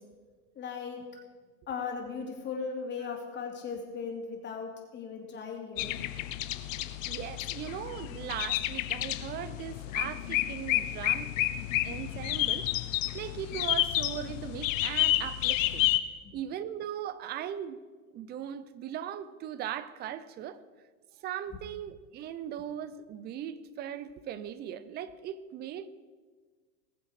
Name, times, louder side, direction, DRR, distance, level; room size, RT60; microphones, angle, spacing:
voice 1, 0.6-1.0 1.7-6.0 16.2-16.4, left 5 dB, 25° left, 2.9 m, -37 dB
sound 1, 5.8-16.0, left 15 dB, 65° left, 0.9 m, -30 dB
voice 2, 7.1-11.3 11.8-12.7 13.1-15.9 16.3-17.8 18.1-20.6 21.2-25.9, right 10 dB, 25° right, 0.6 m, -39 dB
20.0 x 7.5 x 4.9 m
hypercardioid pair, 130°, 43 cm